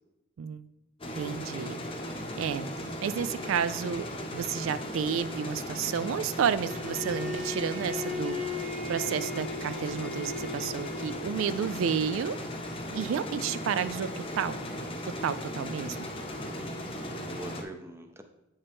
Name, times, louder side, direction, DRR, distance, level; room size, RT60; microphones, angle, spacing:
sound 1, 1.0-17.6, left 1 dB, 25° left, 0.7 m, -37 dB
voice 1, 1.1-1.8 2.1-4.1 4.3-12.4 12.9-14.1 14.4-14.6 15.1-16.1, right 7 dB, 80° right, 14 dB, 0.3 m, -31 dB
Bowed string instrument, 6.7-11.5, left 3 dB, 35° right, 1.4 m, -37 dB
voice 2, 16.4-18.2, right 1 dB, 15° right, 6 dB, 0.5 m, -45 dB
8.1 x 5.5 x 3.5 m, 0.97 s
head